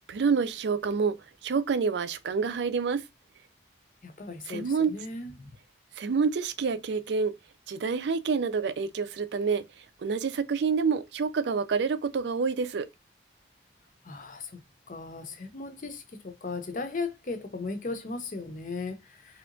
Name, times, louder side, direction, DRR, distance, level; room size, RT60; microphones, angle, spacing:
voice 1, 0.1-1.1 1.4-3.0 4.5-4.9 6.0-7.3 7.7-9.6 10.0-12.9, right 5 dB, 70° right, 0.4 m, -27 dB
voice 2, 4.0-5.5 14.1-14.5 14.9-19.4, left 3 dB, 45° left, 0.6 m, -37 dB
3.3 x 2.8 x 2.5 m
head